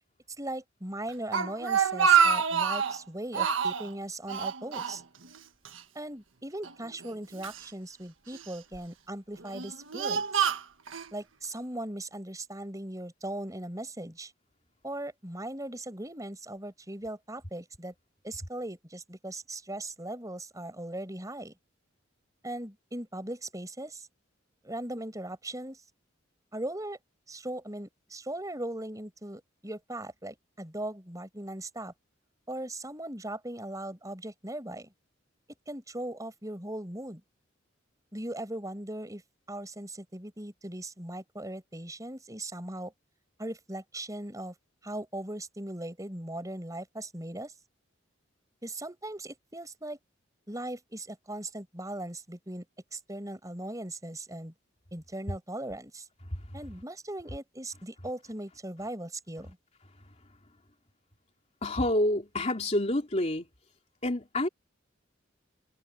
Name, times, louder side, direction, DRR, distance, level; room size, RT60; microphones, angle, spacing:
voice 1, 0.4-5.0 5.9-10.5 11.1-14.3 14.8-17.9 18.2-21.5 22.4-24.1 24.6-25.8 26.5-27.0 27.3-31.9 32.5-34.9 35.7-37.2 38.1-39.2 39.5-42.9 43.4-44.5 44.8-47.5 48.6-50.0 50.5-52.6 52.9-54.5 54.9-56.1 56.5-59.6, right 1 dB, 15° right, 6.1 m, -39 dB
Speech, 1.1-3.0 3.3-3.9 4.3-5.4 5.7-5.8 6.6-7.6 8.3-8.8 9.4-11.1, right 7 dB, 85° right, 1.5 m, -27 dB
voice 2, 61.6-63.5 64.0-64.5, left 1 dB, 35° left, 3.0 m, -28 dB
head